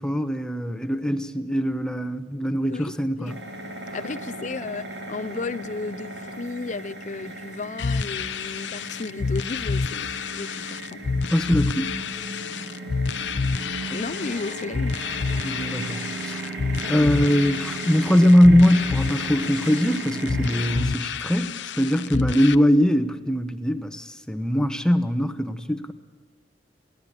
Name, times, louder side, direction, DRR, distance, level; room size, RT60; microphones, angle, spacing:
voice 1, 0.0-3.4 11.3-11.9 15.4-16.6 16.9-25.9, equal, 5° left, 1.0 m, -21 dB
sound 1, 3.3-20.8, right 2 dB, 90° right, 6.8 m, -36 dB
voice 2, 3.9-11.0 13.9-15.0 22.1-22.4, left 3 dB, 45° left, 0.5 m, -33 dB
sound 2, 7.8-22.5, left 4 dB, 90° left, 0.7 m, -29 dB
23.0 x 16.5 x 8.7 m
head